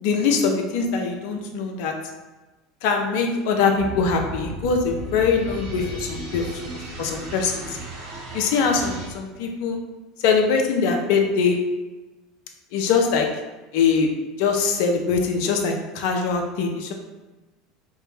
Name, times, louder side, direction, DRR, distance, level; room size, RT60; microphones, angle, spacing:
voice 1, 0.0-2.0 2.8-6.5 7.0-7.8 8.3-9.8 10.2-11.6 12.7-13.3 13.7-14.1 14.4-16.9, left 5 dB, 60° left, 3 dB, 0.4 m, -22 dB
sound 1, 3.8-9.1, right 1 dB, 55° right, 0.7 m, -35 dB
2.5 x 2.1 x 3.1 m, 1.1 s
figure-of-eight pair, 75°, 0 cm